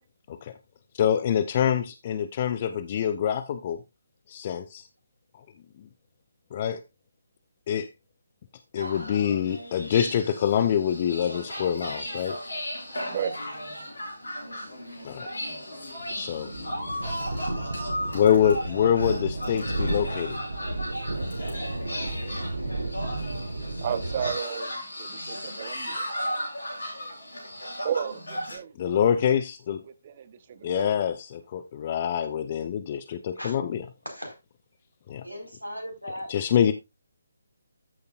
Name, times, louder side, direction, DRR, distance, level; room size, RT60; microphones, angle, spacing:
voice 1, 0.9-3.8 4.3-4.9 6.5-6.8 7.7-7.9 8.7-12.4 15.0-15.3 16.1-16.5 18.1-20.4 28.8-29.8 30.6-33.8 35.1-35.2 36.3-36.7, left 9 dB, 30° left, 0.6 m, -25 dB
sound 1, 8.8-28.6, equal, 70° left, 7.0 m, -36 dB
sound 2, 15.8-24.3, right 2 dB, 70° right, 1.5 m, -33 dB
voice 2, 23.8-26.1 27.8-28.7 30.0-30.9, right 8 dB, 35° right, 0.8 m, -33 dB
voice 3, 35.2-36.3, equal, 90° left, 4.9 m, -37 dB
14.0 x 6.7 x 2.5 m
figure-of-eight pair, 145°, 0 cm